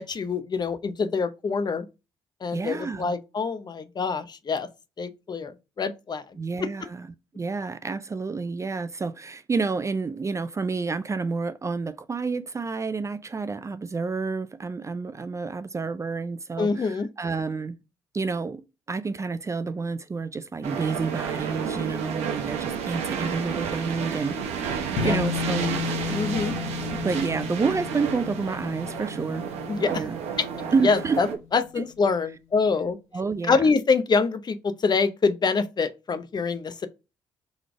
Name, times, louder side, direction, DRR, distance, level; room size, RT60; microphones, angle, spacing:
voice 1, 0.0-1.9 2.4-4.7 5.0-5.5 5.8-6.2 6.8-6.9 16.6-17.1 25.0-25.2 26.1-26.5 29.7-30.0 30.4-30.5 30.8-31.3 31.5-33.0 33.5-36.9, left 4 dB, 40° left, 0.7 m, -25 dB
voice 2, 2.5-3.1 6.4-7.1 7.4-17.8 18.1-25.7 27.0-29.4 29.8-30.2 30.7-31.2 31.8-31.9 33.1-33.6, right 4 dB, 25° right, 0.4 m, -29 dB
sound 1, 20.6-31.3, right 7 dB, 80° right, 0.9 m, -31 dB
sound 2, 25.0-31.6, left 10 dB, 80° left, 0.7 m, -34 dB
4.0 x 3.2 x 3.5 m
supercardioid pair, 65°, 11 cm